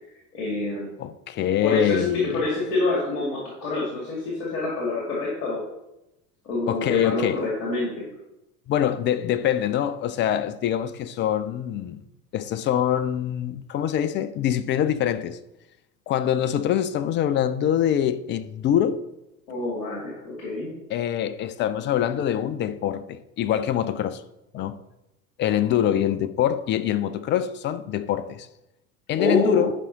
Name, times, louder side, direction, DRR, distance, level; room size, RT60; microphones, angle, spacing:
voice 1, 0.3-0.9 1.6-5.6 6.4-8.1 19.5-20.7 29.2-29.7, left 2 dB, 60° left, 2.4 m, -26 dB
voice 2, 1.0-2.4 6.7-7.4 8.7-12.0 12.3-15.4 16.1-19.0 20.9-24.2 24.5-24.8 25.4-28.5 29.1-29.7, left 10 dB, 25° left, 0.4 m, -24 dB
10.0 x 5.4 x 4.0 m
figure-of-eight pair, 75°, 46 cm